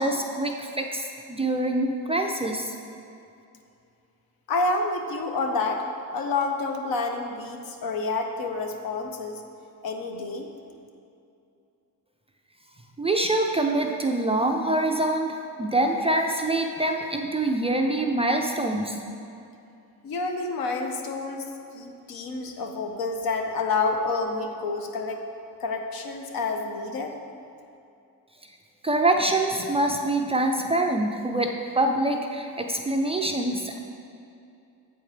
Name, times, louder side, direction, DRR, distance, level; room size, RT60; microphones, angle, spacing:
voice 1, 0.0-2.7 13.0-19.0 28.8-31.5 31.8-33.8, right 2 dB, 15° right, 2 dB, 0.3 m, -25 dB
voice 2, 4.5-9.4 9.8-10.5 20.0-21.5 21.7-25.2 25.6-27.1, left 3 dB, 70° left, 4 dB, 0.9 m, -28 dB
7.8 x 4.5 x 4.9 m, 2.7 s
cardioid pair, 110°, 37 cm